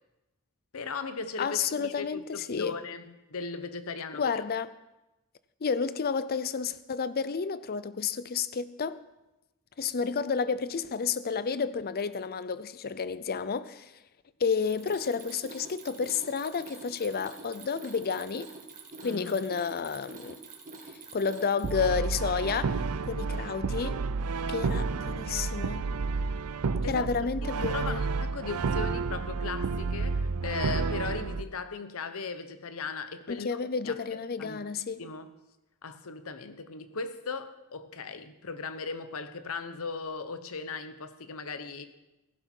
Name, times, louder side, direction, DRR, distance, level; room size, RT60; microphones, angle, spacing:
voice 1, 0.7-4.4 19.0-19.4 26.8-27.1 27.6-33.6 33.8-34.0 34.4-34.6 35.0-35.3 35.8-41.9, left 4 dB, 70° left, 1.0 m, -38 dB
voice 2, 1.4-2.8 4.1-4.7 5.6-9.0 9.8-13.9 14.4-18.5 19.0-20.4 21.1-24.0 24.5-25.8 26.9-28.0 33.3-35.0, left 5 dB, 45° left, 0.5 m, -31 dB
Mechanisms, 14.5-21.9, right 3 dB, 35° right, 2.1 m, -46 dB
Brass instrument, 21.6-31.4, right 4 dB, 75° right, 0.5 m, -31 dB
15.5 x 11.5 x 4.5 m
head